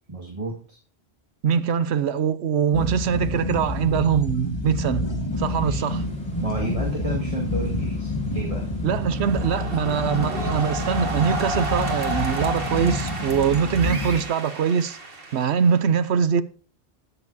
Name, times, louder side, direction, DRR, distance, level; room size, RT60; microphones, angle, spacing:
voice 1, 0.1-0.8 5.6-5.9 6.4-8.7, right 1 dB, 35° right, 2.0 m, -31 dB
voice 2, 1.4-5.1 5.4-6.0 8.8-15.0 15.3-16.4, right 7 dB, 90° right, 1.0 m, -23 dB
sound 1, 2.7-14.2, left 1 dB, 25° left, 2.1 m, -28 dB
sound 2, 5.3-13.1, right 1 dB, 5° left, 3.8 m, -45 dB
sound 3, 9.0-15.9, right 2 dB, 60° right, 2.1 m, -32 dB
19.0 x 6.9 x 2.7 m
omnidirectional pair, 1.1 m